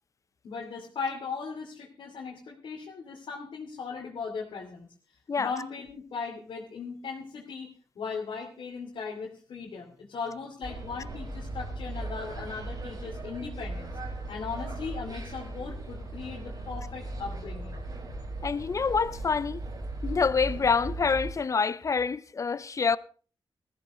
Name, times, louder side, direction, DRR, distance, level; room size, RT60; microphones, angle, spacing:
voice 1, 0.4-4.9 5.4-7.7 7.9-13.9 14.3-17.8, left 5 dB, 80° left, 2.8 m, -38 dB
sound 1, 10.6-21.3, right 2 dB, 50° right, 4.9 m, -38 dB
voice 2, 18.4-19.6 20.0-23.0, left 5 dB, 40° left, 0.6 m, -26 dB
19.5 x 14.5 x 3.2 m
wide cardioid pair, 105°, 9 cm